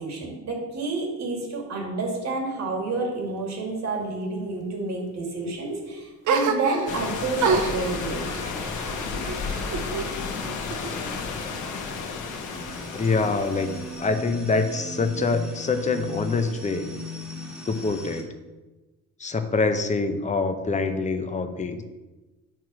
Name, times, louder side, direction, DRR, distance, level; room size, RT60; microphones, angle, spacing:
voice 1, 0.0-8.2, right 3 dB, 60° right, 0 dB, 2.2 m, -29 dB
sound 1, 6.2-7.1 7.4-10.1 10.4-11.3, right 5 dB, 80° right, 0.8 m, -28 dB
sound 2, 6.9-14.1, left 4 dB, 80° left, 1.2 m, -32 dB
sound 3, 10.8-18.2, equal, ahead, 1.5 m, -40 dB
voice 2, 12.9-16.9 17.7-18.3 19.2-21.8, left 3 dB, 25° left, 7 dB, 0.8 m, -25 dB
9.1 x 3.1 x 6.1 m, 1.2 s
cardioid pair, 90°, 30 cm